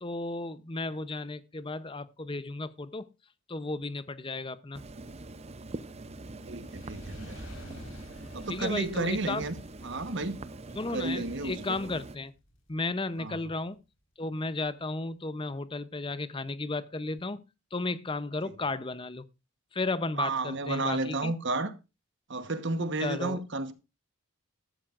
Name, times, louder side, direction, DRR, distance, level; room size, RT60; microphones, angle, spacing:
voice 1, 0.0-3.1 3.5-4.8 8.5-9.5 10.8-12.3 12.7-13.8 14.2-17.4 17.7-19.2 19.7-21.3 23.0-23.4, left 3 dB, 20° left, 0.6 m, -34 dB
sound 1, 4.7-12.2, right 2 dB, 30° right, 0.6 m, -44 dB
voice 2, 6.4-7.4 8.3-9.6 9.8-10.4 10.9-11.8 13.2-13.4 20.2-21.7 22.3-23.7, right 3 dB, 55° right, 1.2 m, -32 dB
Fire, 6.5-12.9 13.6-13.7, equal, 60° left, 4.4 m, -49 dB
13.5 x 13.0 x 2.5 m
head